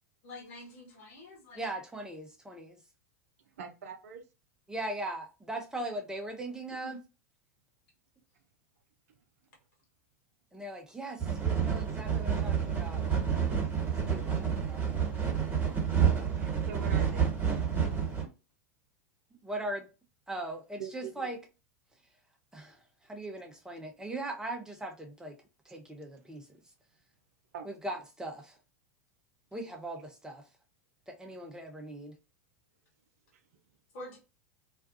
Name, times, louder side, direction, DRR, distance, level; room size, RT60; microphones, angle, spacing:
voice 1, 0.2-1.6 6.8-7.0 33.9-34.2, left 1 dB, 60° left, 1.2 m, -46 dB
voice 2, 1.5-2.8 4.7-7.0 10.5-13.2 14.1-15.2 19.4-19.9 20.3-21.4 22.5-22.8 23.1-25.4 25.7-26.5 27.6-28.6 29.5-30.4 31.1-32.1, right 1 dB, 10° right, 0.7 m, -39 dB
voice 3, 3.6-4.2 16.4-17.3 20.8-21.4 27.5-28.0 31.3-31.4, right 7 dB, 65° right, 0.5 m, -44 dB
sound 1, 11.2-18.2, right 7 dB, 25° right, 1.4 m, -29 dB
2.5 x 2.3 x 2.5 m
figure-of-eight pair, 85°, 8 cm